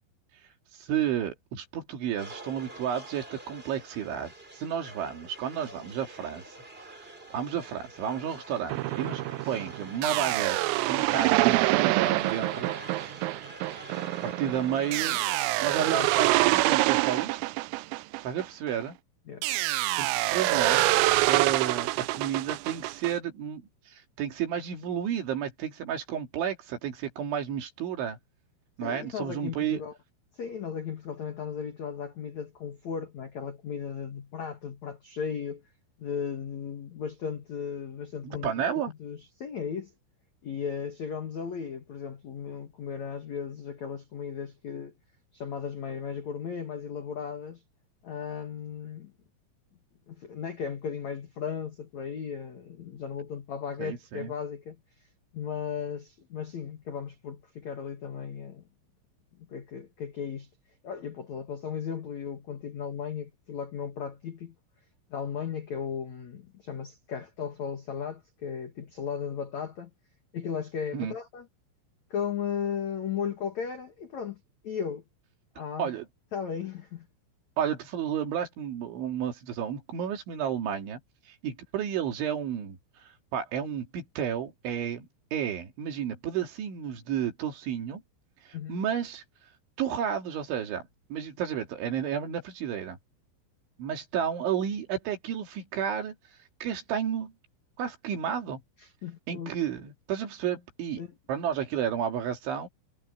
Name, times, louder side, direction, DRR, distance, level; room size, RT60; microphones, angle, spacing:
voice 1, 0.8-6.6 7.0-10.6 10.9-12.7 14.2-15.2 15.6-17.4 18.2-19.0 20.0-28.2 28.8-29.8 38.2-38.9 53.8-54.3 70.9-71.1 75.8-76.1 77.6-81.0 81.3-82.8 83.3-85.1 85.3-88.0 88.7-89.2 89.8-90.8 91.1-93.0 93.8-96.2 96.6-97.3 97.8-98.6 99.3-101.0 101.3-102.7, right 9 dB, 65° right, 4.9 m, -31 dB
sound 1, 2.2-16.4, right 1 dB, 20° right, 1.8 m, -45 dB
sound 2, 8.7-18.8 19.4-23.1, right 19 dB, 90° right, 3.4 m, -26 dB
voice 2, 15.8-16.1 19.3-19.5 28.8-29.9 30.4-35.6 36.0-39.9 40.4-44.9 45.3-47.6 48.0-49.1 50.1-54.8 55.3-58.6 59.5-60.5 60.8-64.5 65.1-69.9 70.3-71.5 72.1-74.4 74.6-75.0 75.6-75.9 76.3-77.1 88.5-88.8 98.8-99.5 101.0-101.1, left 7 dB, 70° left, 1.7 m, -36 dB
omnidirectional pair, 6.0 m